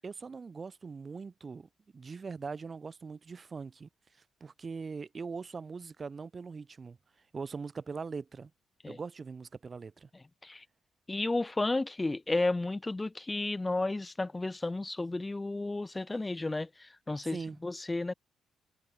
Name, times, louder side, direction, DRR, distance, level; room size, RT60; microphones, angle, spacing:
voice 1, 0.0-7.0 7.3-8.5 8.9-10.1 17.2-17.6, right 5 dB, 35° right, 7.8 m, -41 dB
voice 2, 11.1-18.1, left 2 dB, 15° left, 0.8 m, -32 dB
cardioid pair, 90°, 0 cm